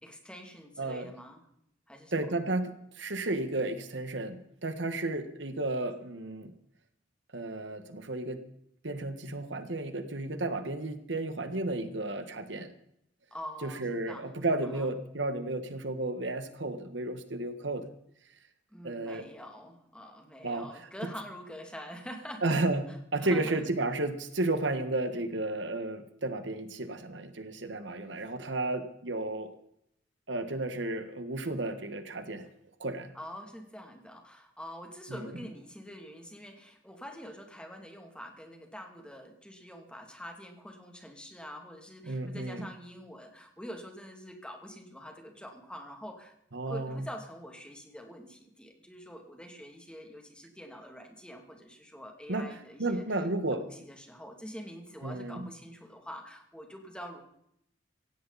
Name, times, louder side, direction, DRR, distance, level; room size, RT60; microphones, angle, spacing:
voice 1, 0.0-1.4 1.9-2.3 13.3-14.2 14.7-14.9 18.7-22.6 22.9-23.0 23.2-23.6 33.1-46.3 46.6-57.2, equal, 5° left, 3 dB, 2.7 m, -45 dB
voice 2, 0.8-1.1 2.1-6.5 7.3-8.4 8.8-12.7 13.6-17.9 18.8-19.2 20.4-20.7 22.4-22.8 23.1-29.5 30.3-32.5 32.8-33.1 35.1-35.2 42.0-42.7 46.5-47.0 52.3-52.4 52.8-53.6 55.0-55.5, right 2 dB, 75° right, 9 dB, 1.6 m, -33 dB
16.5 x 16.5 x 4.2 m, 0.75 s
head